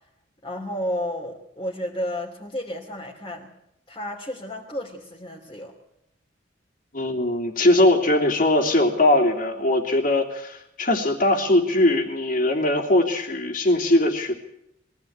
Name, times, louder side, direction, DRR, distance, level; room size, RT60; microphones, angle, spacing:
voice 1, 0.4-3.5 3.9-5.7, equal, 20° left, -3 dB, 2.9 m, -32 dB
voice 2, 6.9-14.4, left 1 dB, 45° left, 2 dB, 3.3 m, -20 dB
22.5 x 16.0 x 8.9 m, 0.78 s
head